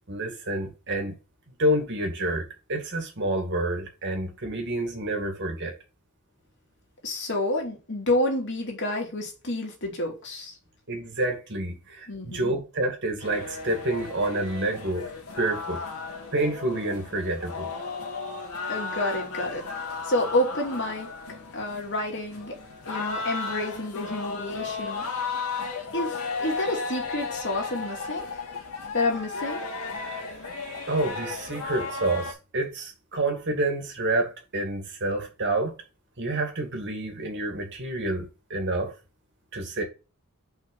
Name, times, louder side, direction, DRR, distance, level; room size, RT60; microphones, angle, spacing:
voice 1, 0.1-1.2 1.6-5.8 10.9-15.1 15.4-15.8 16.3-17.7 30.3-30.4 30.9-35.8 36.2-38.9 39.5-39.8, right 1 dB, 55° right, 2.3 m, -28 dB
voice 2, 7.0-10.5 12.1-12.5 18.7-21.1 21.5-22.5 22.9-25.1 25.9-28.3 28.9-29.6, left 1 dB, 55° left, 2.8 m, -29 dB
sound 1, 13.2-32.3, left 4 dB, 80° left, 2.2 m, -35 dB
5.9 x 5.4 x 5.5 m
head